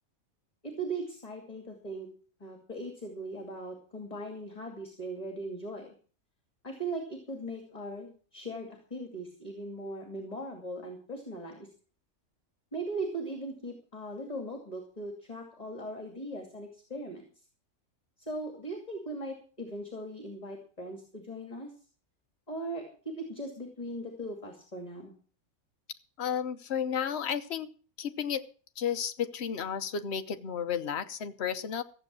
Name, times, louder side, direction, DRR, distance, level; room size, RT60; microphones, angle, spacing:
voice 1, 0.6-2.1 2.4-5.9 6.6-11.7 12.7-17.3 18.2-21.7 22.5-25.1, right 1 dB, 30° left, 3 dB, 2.6 m, -39 dB
voice 2, 26.2-27.7 28.0-28.4 28.8-31.8, left 8 dB, 55° left, 9 dB, 1.2 m, -32 dB
15.0 x 8.0 x 7.5 m, 0.41 s
omnidirectional pair, 1.4 m